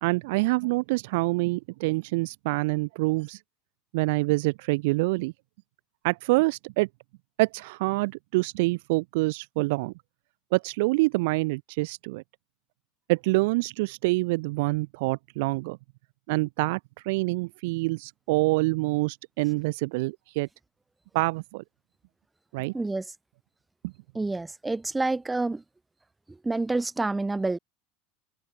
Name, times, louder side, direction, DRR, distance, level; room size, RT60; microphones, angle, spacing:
voice 1, 0.0-3.4 3.9-5.3 6.0-6.9 7.4-9.9 10.5-12.2 13.1-15.8 16.3-20.5 21.1-21.6 22.5-22.7 23.8-23.9, right 24 dB, 60° right, 0.4 m, -26 dB
voice 2, 22.7-23.1 24.1-25.6 26.3-27.6, right 2 dB, 10° right, 1.8 m, -28 dB
figure-of-eight pair, 75°, 0 cm